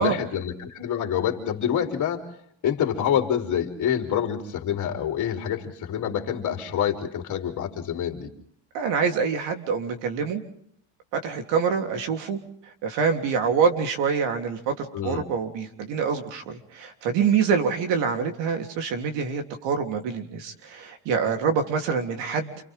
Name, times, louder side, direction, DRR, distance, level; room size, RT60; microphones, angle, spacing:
voice 1, 0.0-2.3 2.6-8.3 14.9-15.2, left 9 dB, 40° left, 3 dB, 3.6 m, -27 dB
voice 2, 8.7-10.4 11.1-12.4 12.8-22.5, right 6 dB, 65° right, 4 dB, 3.5 m, -25 dB
29.0 x 28.5 x 3.7 m, 0.66 s
cardioid pair, 165°, 47 cm